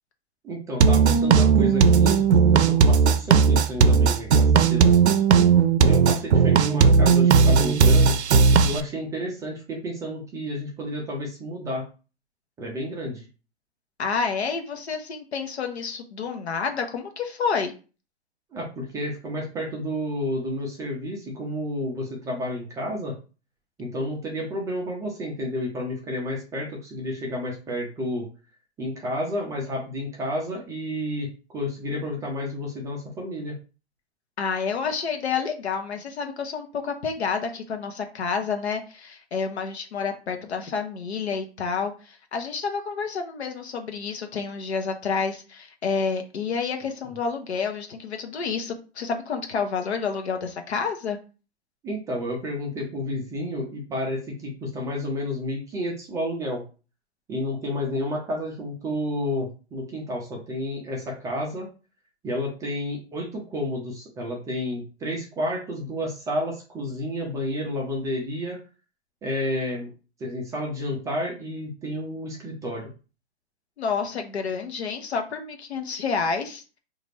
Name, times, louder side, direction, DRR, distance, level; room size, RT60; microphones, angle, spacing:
voice 1, 0.4-2.2 2.5-5.0 5.8-8.2 8.6-11.8 12.6-13.2 18.5-23.1 23.8-28.3 28.8-33.6 51.8-56.6 57.3-61.7 62.2-68.6 69.2-69.9 70.2-72.9, left 1 dB, 10° right, -1 dB, 0.5 m, -31 dB
sound 1, 0.8-8.8, right 5 dB, 75° right, 0.5 m, -17 dB
voice 2, 14.0-17.7 34.4-51.2 73.8-76.6, left 5 dB, 70° left, 5 dB, 0.9 m, -29 dB
3.9 x 2.5 x 3.2 m, 0.34 s
hypercardioid pair, 125°, 33 cm